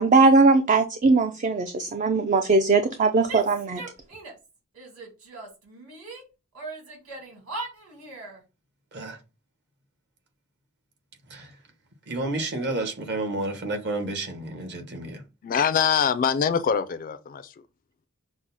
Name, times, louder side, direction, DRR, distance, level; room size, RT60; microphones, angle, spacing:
voice 1, 0.0-3.8, right 3 dB, 35° right, 0.4 m, -20 dB
Female speech woman speaking / Yell, 3.3-4.5 4.7-6.2 6.5-8.4, right 2 dB, 85° right, 2.3 m, -39 dB
voice 2, 12.1-15.2, right 2 dB, 55° right, 1.1 m, -30 dB
voice 3, 15.4-17.4, left 7 dB, 40° left, 0.3 m, -23 dB
6.1 x 2.0 x 4.0 m
head